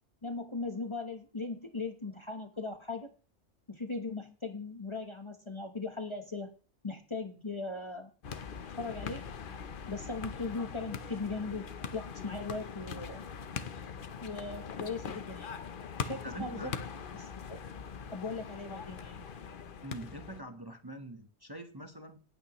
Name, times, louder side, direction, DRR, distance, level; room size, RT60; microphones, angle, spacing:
voice 1, 0.2-3.1 3.7-6.5 6.8-8.1 8.8-9.2 9.9-13.2 14.2-15.6 16.0-16.7 17.1-17.6 18.1-19.2, left 3 dB, 25° left, 6 dB, 1.0 m, -39 dB
sound 1, 8.2-20.4, left 6 dB, 50° left, 0.9 m, -42 dB
voice 2, 16.2-16.8 19.8-22.2, right 1 dB, 20° right, 6 dB, 1.0 m, -44 dB
17.5 x 8.9 x 3.0 m, 0.38 s
omnidirectional pair, 1.2 m